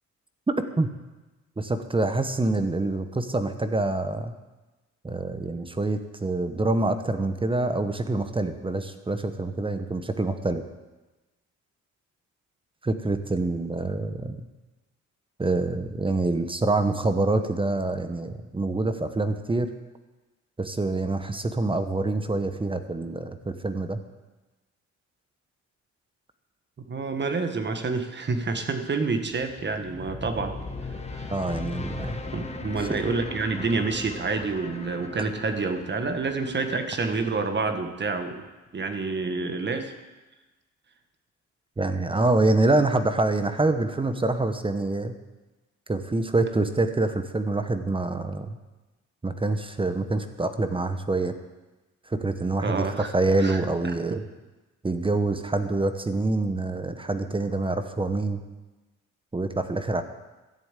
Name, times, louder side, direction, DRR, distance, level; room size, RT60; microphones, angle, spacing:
voice 1, 0.5-0.9 1.6-4.3 5.0-10.7 12.8-14.4 15.4-19.7 20.6-24.0 31.3-32.2 32.9-33.0 41.8-45.1 45.9-48.5 49.2-51.3 52.1-54.2 54.8-58.4 59.3-60.0, right 2 dB, 15° right, 9 dB, 1.0 m, -26 dB
voice 2, 26.9-30.5 30.9-31.3 32.3-38.4 38.7-39.9 52.6-53.1 53.4-53.6 53.8-53.9, right 4 dB, 35° right, 7 dB, 1.6 m, -28 dB
sound 1, 29.3-38.4, left 3 dB, 20° left, 1.4 m, -39 dB
13.0 x 7.2 x 9.0 m, 1.1 s
cardioid pair, 90°, 30 cm